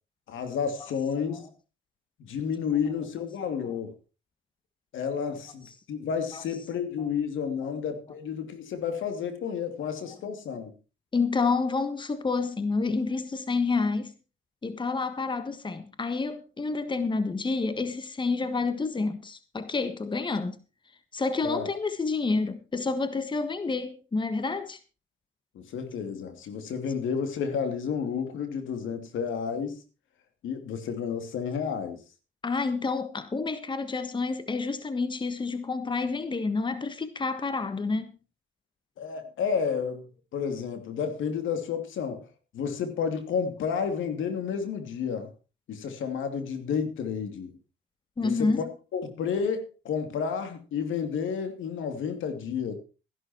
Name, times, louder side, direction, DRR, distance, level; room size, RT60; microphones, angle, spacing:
voice 1, 0.3-1.5 2.2-3.9 4.9-10.7 21.4-21.7 25.5-29.8 30.4-32.0 39.0-42.2 42.5-45.3 45.7-47.5 48.2-48.5 48.9-52.7, left 6 dB, 80° left, 2.8 m, -31 dB
voice 2, 11.1-14.1 14.6-20.6 21.1-24.8 32.4-38.1 48.2-48.6, left 4 dB, 25° left, 1.4 m, -29 dB
14.5 x 11.5 x 4.5 m
cardioid pair, 90°, 20 cm